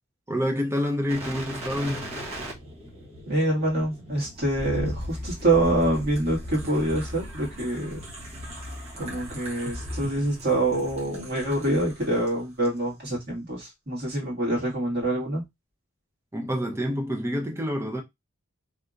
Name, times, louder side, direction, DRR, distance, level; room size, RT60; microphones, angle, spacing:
voice 1, 0.3-2.1 16.3-18.0, equal, 10° right, 0.6 m, -27 dB
sound 1, 1.1-12.3 12.6-12.8, equal, 30° right, 1.1 m, -37 dB
voice 2, 3.2-8.0 9.0-15.4, right 1 dB, 45° right, 1.9 m, -26 dB
3.4 x 2.8 x 2.4 m
head